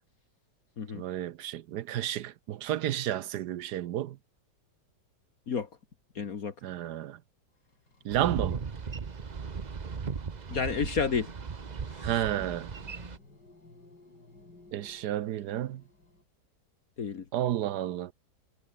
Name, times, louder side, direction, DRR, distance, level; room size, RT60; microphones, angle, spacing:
voice 1, 0.9-4.2 6.6-7.2 8.0-8.6 12.0-12.7 14.7-15.8 17.3-18.1, right 12 dB, 70° right, 1.2 m, -31 dB
voice 2, 6.2-6.5 10.5-11.3 11.9-12.2 17.0-17.3, left 6 dB, 55° left, 1.9 m, -31 dB
sound 1, 7.5-16.2, left 2 dB, 70° left, 7.1 m, -59 dB
Boat Water vehicle, 8.1-13.2, right 5 dB, 35° right, 0.8 m, -37 dB
omnidirectional pair, 1.9 m